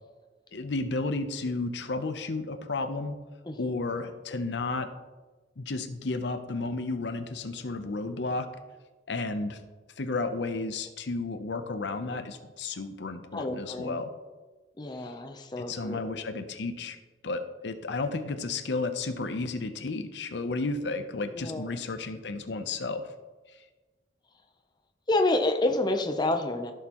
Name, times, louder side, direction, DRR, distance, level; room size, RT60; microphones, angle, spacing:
voice 1, 0.5-3.2 3.6-4.9 5.6-8.5 9.1-9.6 10.0-14.1 15.6-17.0 17.2-23.1, left 3 dB, 65° left, 9 dB, 0.7 m, -32 dB
voice 2, 13.3-14.0 14.8-16.1 21.3-21.7 25.1-26.7, left 2 dB, 25° left, 5 dB, 0.6 m, -28 dB
14.5 x 6.5 x 3.0 m, 1.3 s
head